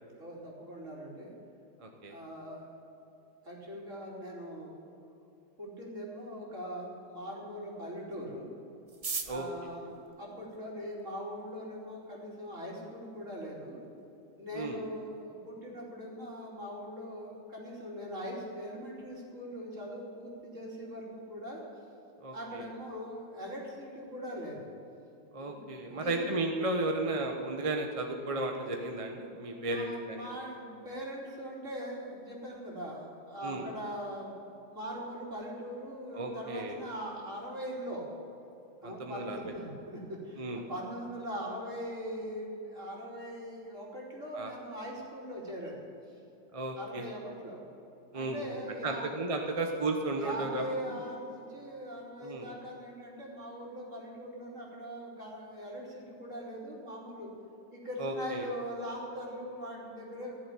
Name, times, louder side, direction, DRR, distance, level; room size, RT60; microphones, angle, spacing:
voice 1, 0.2-1.3 2.1-2.7 3.4-4.8 5.6-8.5 9.3-13.8 14.4-21.6 22.3-24.7 25.4-26.2 29.5-34.3 34.7-38.1 38.8-45.8 46.8-47.6 48.1-49.1 50.2-57.3 57.7-60.5, equal, 40° right, -3 dB, 3.5 m, -41 dB
voice 2, 1.8-2.1 9.3-9.5 14.5-14.8 22.2-22.6 25.3-30.3 33.4-33.6 36.1-36.8 38.8-39.4 40.4-40.6 44.3-44.5 46.5-47.0 48.1-50.6 50.9-51.0 52.2-52.5 58.0-58.4, right 2 dB, 25° right, 3 dB, 0.8 m, -34 dB
sound 1, 8.9-11.1 11.9-12.0 12.2-12.3 12.6-13.1 13.4-13.5 13.7-14.1 14.4-14.6 15.0-15.3, right 4 dB, 65° right, 0.3 m, -40 dB
14.5 x 7.5 x 9.9 m, 2.9 s
omnidirectional pair, 2.0 m